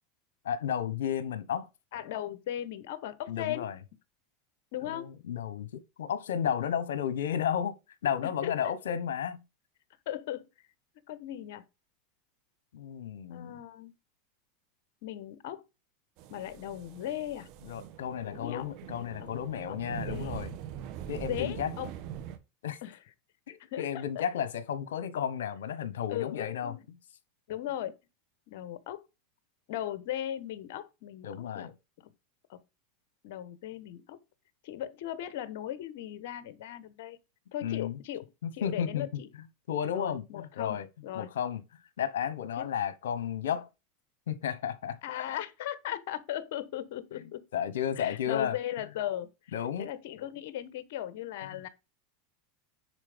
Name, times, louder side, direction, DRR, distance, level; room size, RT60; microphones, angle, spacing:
voice 1, 0.4-1.7 3.3-3.8 4.8-7.7 8.0-9.4 12.7-13.5 17.6-20.5 21.1-21.7 22.6-22.8 23.5-27.0 31.2-31.7 37.6-38.0 38.4-39.1 39.7-40.9 41.1-41.6 42.0-43.7 44.3-45.3 47.1-47.2 47.5-48.6 49.5-49.9, left 9 dB, 85° left, 1.2 m, -33 dB
voice 2, 1.9-3.7 4.7-5.1 8.2-8.7 10.1-10.5 11.1-11.6 13.3-13.9 15.0-15.6 16.3-17.5 18.2-18.7 18.9-19.3 19.7-19.8 20.1-20.4 21.2-21.9 22.8-23.0 23.6-24.2 26.1-26.8 27.5-27.9 28.5-29.0 29.7-31.3 31.5-31.7 32.0-32.1 32.5-32.6 33.2-34.2 34.6-37.2 37.5-38.2 38.5-39.3 39.9-41.3 42.6-42.7 45.0-47.4 48.0-49.3 49.8-51.7, left 12 dB, 70° left, 1.2 m, -37 dB
sound 1, 16.2-22.4, right 10 dB, 55° right, 1.6 m, -42 dB
9.8 x 4.3 x 5.2 m
supercardioid pair, 120°, 0 cm